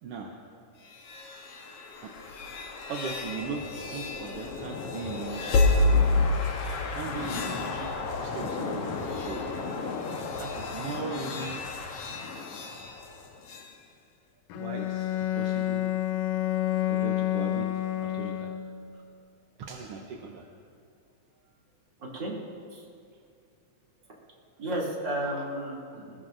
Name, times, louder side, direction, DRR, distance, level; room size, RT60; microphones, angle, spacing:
voice 1, 0.0-0.5 1.7-2.1 2.9-6.1 6.9-9.4 10.4-11.6 12.4-12.5 14.5-15.8 16.5-17.7 18.0-18.5 18.9-19.0 19.6-20.5, right 4 dB, 65° right, 1 dB, 1.6 m, -39 dB
sound 1, 0.8-13.7, left 3 dB, 60° left, 1.9 m, -30 dB
Bowed string instrument, 14.5-18.9, left 13 dB, 80° left, 1.5 m, -29 dB
voice 2, 22.0-22.3 22.7-22.8 24.6-26.2, right 1 dB, 40° right, -5 dB, 3.3 m, -33 dB
21.5 x 20.0 x 2.6 m, 2.4 s
omnidirectional pair, 3.4 m